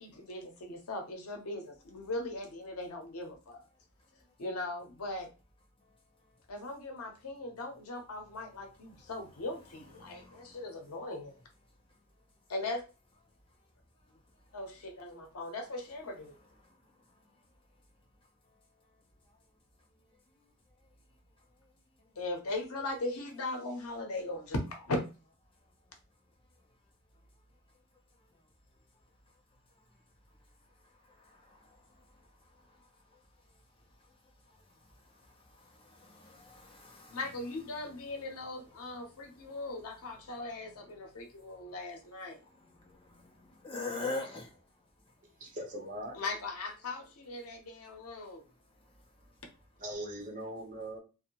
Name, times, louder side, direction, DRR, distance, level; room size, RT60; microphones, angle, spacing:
voice 1, 0.0-3.6 4.4-5.3 6.5-11.3 12.5-12.8 14.5-16.4 22.2-25.0 37.1-42.4 46.1-48.4, left 2 dB, 85° left, 0.7 m, -39 dB
voice 2, 9.7-11.0 11.7-12.0 13.6-13.7 14.0-14.6 16.6-17.5 17.8-17.9 18.4-18.5 19.2-19.4 20.1-20.9 21.4-21.7 22.1-22.2 27.7-27.8 28.1-28.5 28.9-37.3 37.7-45.4 48.2-49.6, left 3 dB, 25° left, 0.5 m, -49 dB
voice 3, 45.4-46.2 47.5-47.6 49.8-51.0, right 1 dB, 35° right, 0.8 m, -40 dB
2.5 x 2.1 x 2.8 m
head